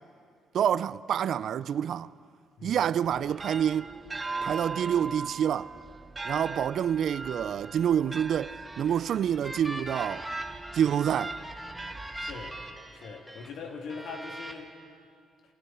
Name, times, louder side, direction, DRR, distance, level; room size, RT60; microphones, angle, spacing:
voice 1, 0.5-2.1 2.6-3.9 4.4-5.7 6.2-10.2 10.7-11.4, right 9 dB, 65° right, 0.5 m, -27 dB
voice 2, 2.6-2.9 12.2-12.6 12.9-14.7, left 4 dB, 75° left, 3.0 m, -41 dB
sound 1, 3.0-12.9, right 3 dB, 25° right, 0.9 m, -40 dB
sound 2, 8.4-13.5 13.9-14.5, right 1 dB, ahead, 2.4 m, -41 dB
28.0 x 27.5 x 4.5 m
cardioid pair, 90°, 0 cm